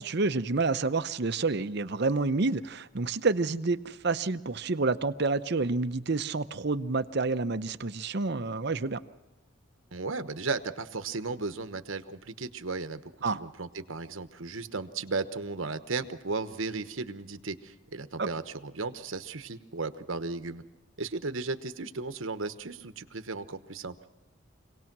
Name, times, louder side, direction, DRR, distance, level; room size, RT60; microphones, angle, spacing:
voice 1, 0.0-9.0 13.2-13.4 18.2-18.3, right 3 dB, 50° right, 11 dB, 0.7 m, -28 dB
voice 2, 9.9-13.0 13.3-20.6 21.0-23.9, right 3 dB, 70° right, 10 dB, 1.1 m, -35 dB
26.0 x 18.0 x 6.1 m, 1.1 s
head